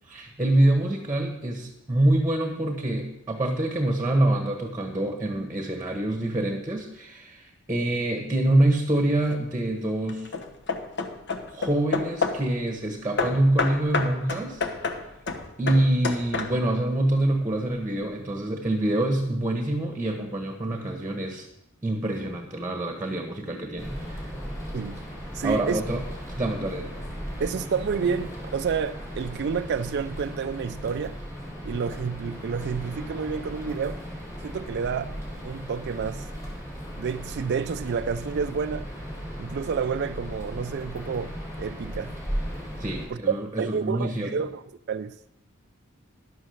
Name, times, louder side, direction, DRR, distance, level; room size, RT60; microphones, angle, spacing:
voice 1, 0.1-10.3 11.4-14.7 15.6-21.5 21.8-24.2 25.4-26.0 26.4-26.9 42.8-44.5, right 1 dB, 10° right, 1.3 m, -26 dB
Hammer / Wood, 9.0-9.4 10.1-12.5 13.2-16.8, left 4 dB, 55° left, 1.1 m, -30 dB
sound 1, 23.8-43.1, equal, 15° left, 4.1 m, -36 dB
voice 2, 25.3-25.8 27.4-31.2 31.6-34.0 34.4-35.2 35.4-36.3 37.0-38.9 39.4-42.1 43.1-44.6 44.9-45.1, right 6 dB, 55° right, 0.4 m, -29 dB
11.0 x 7.4 x 6.5 m
head